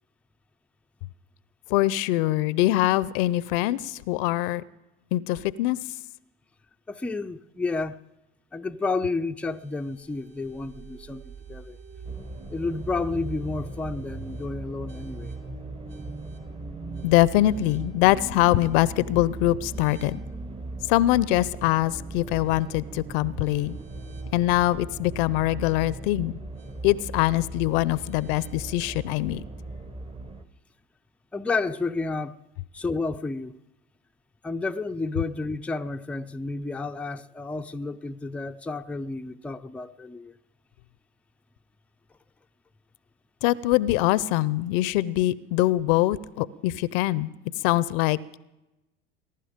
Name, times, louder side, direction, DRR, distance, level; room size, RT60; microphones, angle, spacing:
voice 1, 1.7-4.6 5.1-5.8 17.0-20.2 20.9-23.8 24.3-26.4 26.8-29.4 43.4-47.3 47.6-48.2, left 16 dB, 65° left, 0.6 m, -23 dB
voice 2, 6.9-8.0 8.5-11.8 12.5-15.3 31.3-32.3 32.7-33.6 34.4-40.4, left 3 dB, 5° left, 0.5 m, -31 dB
sound 1, 9.5-29.2, right 5 dB, 40° right, 4.4 m, -46 dB
sound 2, 12.0-30.5, right 2 dB, 20° right, 1.1 m, -39 dB
21.0 x 11.0 x 5.1 m
hypercardioid pair, 80°, 29 cm